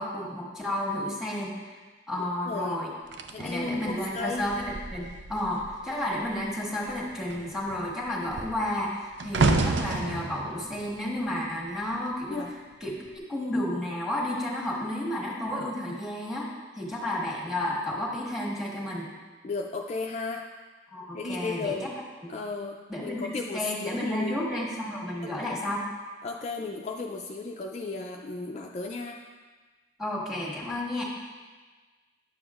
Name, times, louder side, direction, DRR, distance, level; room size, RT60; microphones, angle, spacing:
voice 1, 0.0-1.8 2.1-2.9 3.4-13.0 13.3-16.5 16.7-19.1 20.9-21.9 22.2-22.3 22.9-23.2 23.5-25.8 30.0-31.0, left 1 dB, ahead, -5 dB, 1.4 m, -32 dB
voice 2, 2.2-2.8 3.3-4.5 12.3-12.5 19.4-20.5 21.1-21.9 22.3-24.4 25.4-25.5 26.2-29.2, left 3 dB, 40° left, 1 dB, 0.4 m, -34 dB
sound 1, 3.1-5.8 6.1-6.5 6.8-12.1 12.9-13.1, right 3 dB, 85° right, 0.5 m, -31 dB
10.0 x 6.9 x 2.4 m, 1.4 s
head